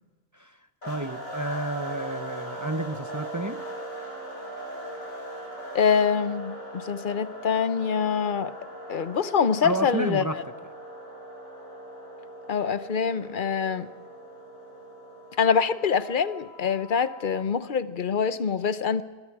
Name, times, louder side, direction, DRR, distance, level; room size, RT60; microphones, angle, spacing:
sound 1, 0.8-17.5, right 1 dB, 80° left, 6.7 m, -40 dB
voice 1, 0.8-3.6 9.6-10.4, right 2 dB, 20° right, 10 dB, 0.5 m, -31 dB
voice 2, 5.7-8.5 8.9-10.3 12.5-13.9 15.4-19.0, left 6 dB, 45° left, 14 dB, 0.9 m, -25 dB
23.5 x 23.0 x 4.9 m, 1.4 s
omnidirectional pair, 1.4 m